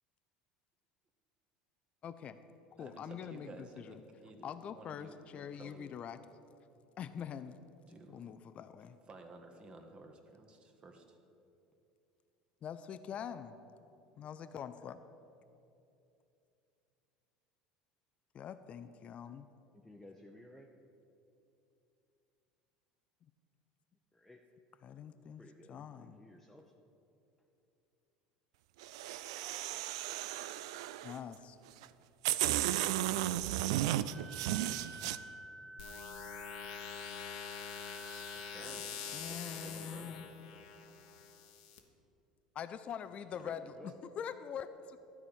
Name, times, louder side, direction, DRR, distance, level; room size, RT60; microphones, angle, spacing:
voice 1, 2.0-2.4 2.7-4.0 4.4-6.2 7.0-7.6 8.1-9.0 12.6-13.6 14.2-15.0 18.3-19.5 24.8-26.2 31.0-31.6 39.1-40.3 42.5-45.0, left 8 dB, 40° left, 11 dB, 0.5 m, -44 dB
voice 2, 2.8-6.0 7.9-8.3 9.1-11.2 38.3-40.2 43.4-43.6, right 2 dB, 35° right, 5 dB, 1.5 m, -54 dB
voice 3, 19.7-20.7 24.1-24.4 25.4-26.7 41.0-41.1 43.5-43.9, left 1 dB, 5° left, 1 dB, 0.8 m, -56 dB
sound 1, 28.8-31.2 31.8-31.9 32.2-35.2, right 13 dB, 70° right, 0.3 m, -34 dB
Wind instrument woodwind instrument, 34.1-38.8, right 2 dB, 15° right, 1.2 m, -51 dB
sound 2, 35.8-41.8, left 7 dB, 70° left, 1.1 m, -45 dB
13.0 x 4.8 x 8.8 m, 2.7 s
hypercardioid pair, 70°, 3 cm